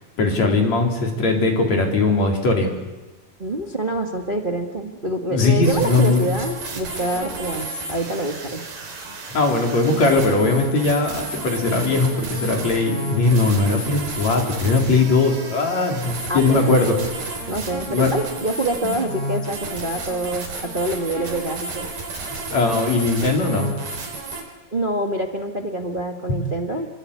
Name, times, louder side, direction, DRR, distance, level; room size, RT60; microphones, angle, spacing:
voice 1, 0.2-2.7 5.3-6.3 9.3-16.9 17.9-18.1 18.8-18.9 22.5-23.7 26.3-26.4, left 3 dB, 50° left, 1 dB, 4.9 m, -19 dB
voice 2, 3.4-8.6 16.3-16.8 17.4-21.9 24.7-26.9, right 1 dB, 40° right, 3 dB, 0.7 m, -26 dB
sound 1, 5.6-24.4, right 2 dB, 90° right, 6.2 m, -32 dB
28.5 x 24.0 x 8.5 m, 1.2 s
omnidirectional pair, 4.2 m